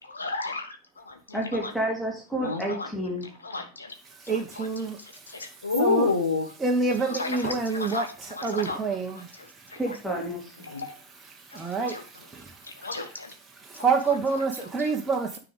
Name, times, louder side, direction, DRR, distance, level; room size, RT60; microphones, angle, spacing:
voice 1, 0.0-1.7 2.3-2.9 3.4-4.0 4.2-4.7 5.3-6.5 7.1-8.1 8.4-8.8 9.7-10.0 10.6-11.0 11.5-12.0 12.6-13.3 13.7-13.9 14.8-14.9, left 3 dB, 75° left, 1.3 m, -31 dB
voice 2, 1.3-3.3 9.8-10.7, right 1 dB, 5° left, 2.5 m, -30 dB
voice 3, 4.0-6.1 6.6-9.8 10.7-10.8 11.1-15.4, right 4 dB, 15° right, 1.1 m, -29 dB
9.5 x 4.9 x 5.2 m
figure-of-eight pair, 90°, 0 cm